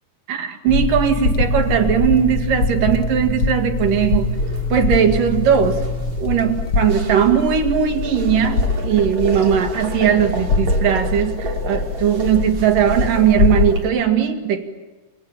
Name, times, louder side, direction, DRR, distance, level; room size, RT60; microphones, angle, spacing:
voice 1, 0.3-4.3 4.7-5.8 6.2-14.6, right 8 dB, 75° right, 6 dB, 3.6 m, -18 dB
sound 1, 0.7-13.9, left 3 dB, 45° left, 2.1 m, -23 dB
sound 2, 3.8-13.8, right 2 dB, 55° right, 4.6 m, -34 dB
28.5 x 27.0 x 7.5 m, 1.2 s
omnidirectional pair, 3.9 m